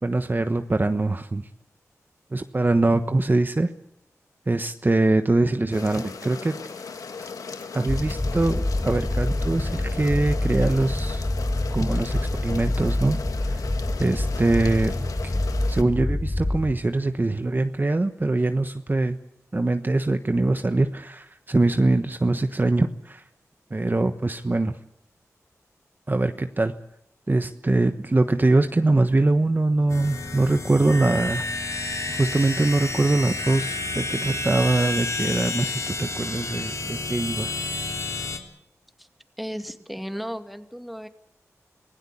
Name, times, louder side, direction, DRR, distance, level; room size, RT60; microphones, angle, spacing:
voice 1, 0.0-1.5 2.3-3.7 4.5-6.5 7.2-7.3 7.7-11.3 11.7-13.6 14.0-14.9 15.2-15.3 15.7-19.2 19.5-23.2 23.7-24.7 26.1-26.7 27.3-31.4 32.2-37.5, right 2 dB, 35° right, 8 dB, 1.2 m, -23 dB
sound 1, 5.7-15.8, left 5 dB, 90° left, 1.7 m, -37 dB
sound 2, 7.9-16.7, left 1 dB, 35° left, 1.7 m, -26 dB
sound 3, 29.9-38.4, left 3 dB, 60° left, 3.5 m, -30 dB
voice 2, 39.4-41.1, equal, ahead, 7 dB, 2.4 m, -34 dB
26.0 x 16.5 x 8.6 m, 0.80 s
cardioid pair, 45°, 6 cm